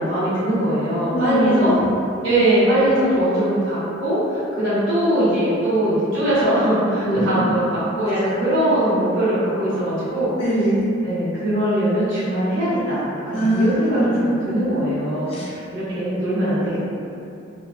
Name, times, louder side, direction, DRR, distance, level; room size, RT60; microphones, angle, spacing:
voice 1, 0.0-1.7 2.2-10.3 11.0-15.4 15.7-16.8, right 1 dB, 75° right, -12 dB, 0.9 m, -21 dB
voice 2, 1.1-1.8 7.0-7.5 8.1-8.2 10.4-10.9 13.3-14.4 15.3-15.5, right 1 dB, 30° left, -7 dB, 0.4 m, -22 dB
2.8 x 2.3 x 2.4 m, 2.7 s
head